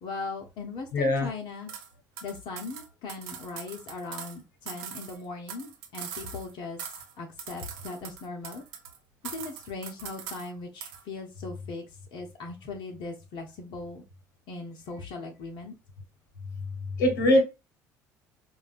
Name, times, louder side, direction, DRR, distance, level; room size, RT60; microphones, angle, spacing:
voice 1, 0.0-1.7 2.2-8.6 9.2-14.0 14.5-15.7, left 3 dB, 55° left, 2 dB, 0.7 m, -39 dB
voice 2, 0.9-1.3 17.0-17.4, left 1 dB, 80° left, 4 dB, 1.0 m, -21 dB
sound 1, 1.7-1.9 2.2-4.4 4.7-6.5 6.8-7.1 7.4-9.0 9.2-10.5 10.8-11.0, right 8 dB, 70° right, 0.6 m, -41 dB
4.6 x 2.2 x 2.4 m, 0.27 s
hypercardioid pair, 60°, 10 cm